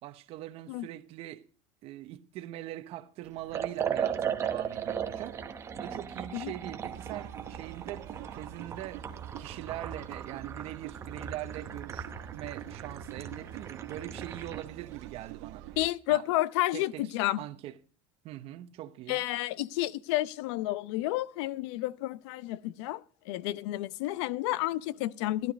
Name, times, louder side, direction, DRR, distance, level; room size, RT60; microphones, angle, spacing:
voice 1, 0.0-1.4 1.8-5.4 5.7-9.1 9.3-12.1 12.3-15.6 16.1-16.3 16.7-17.0 17.4-17.7 18.2-19.2, right 14 dB, 40° right, 1.0 m, -42 dB
Liquid, 3.5-14.7, right 8 dB, 20° right, 0.9 m, -37 dB
sound 1, 6.8-15.9, right 13 dB, 70° right, 1.2 m, -45 dB
voice 2, 15.8-17.4 19.1-25.5, left 16 dB, 75° left, 0.7 m, -31 dB
15.0 x 12.0 x 5.2 m
cardioid pair, 170°, 15 cm